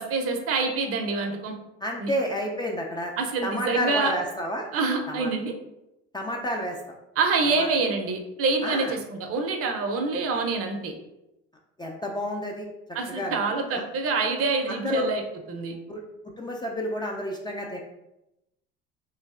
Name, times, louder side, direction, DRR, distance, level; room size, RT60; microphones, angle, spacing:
voice 1, 0.0-1.5 2.0-2.1 3.2-4.1 4.7-5.5 7.2-10.9 12.9-15.2 15.5-15.7, right 4 dB, 45° right, 4 dB, 0.6 m, -26 dB
voice 2, 1.8-3.1 3.4-4.7 5.1-5.3 6.1-6.8 7.6-7.7 8.6-8.9 11.8-12.7 13.1-13.5 14.7-15.1 15.9-16.0 16.4-17.8, left 1 dB, 15° left, -1 dB, 0.3 m, -30 dB
3.1 x 2.6 x 2.4 m, 0.90 s
hypercardioid pair, 75°, 32 cm